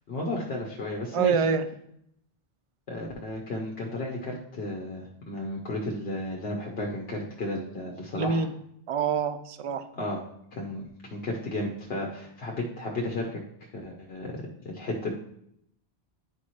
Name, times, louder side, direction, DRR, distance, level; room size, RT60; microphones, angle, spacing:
voice 1, 0.1-1.3 2.9-8.5 9.9-10.2 10.5-10.8 11.1-13.4 13.7-15.1, left 1 dB, 70° left, -1 dB, 1.1 m, -33 dB
voice 2, 1.1-1.7 8.2-8.5 8.9-9.8, right 6 dB, 55° right, 11 dB, 0.3 m, -26 dB
9.8 x 4.2 x 3.1 m, 0.73 s
omnidirectional pair, 1.1 m